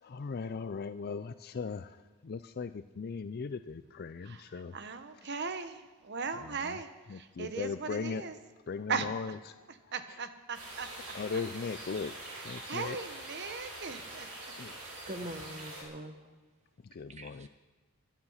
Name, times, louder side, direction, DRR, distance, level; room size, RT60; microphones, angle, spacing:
voice 1, 0.0-4.8 6.4-6.8 7.1-8.2 8.7-9.9 11.1-12.1 12.4-13.0 14.6-15.1 16.8-17.5, left 5 dB, 45° left, 12 dB, 0.4 m, -38 dB
voice 2, 4.2-8.3 8.9-9.1 9.9-11.1 12.3-14.3, right 5 dB, 50° right, 9 dB, 1.1 m, -38 dB
sound 1, 10.5-15.8, right 1 dB, 75° right, 5.6 m, -45 dB
voice 3, 14.8-16.2 17.1-17.5, right 1 dB, 30° right, 7 dB, 1.3 m, -43 dB
24.5 x 9.7 x 5.7 m, 1.3 s
head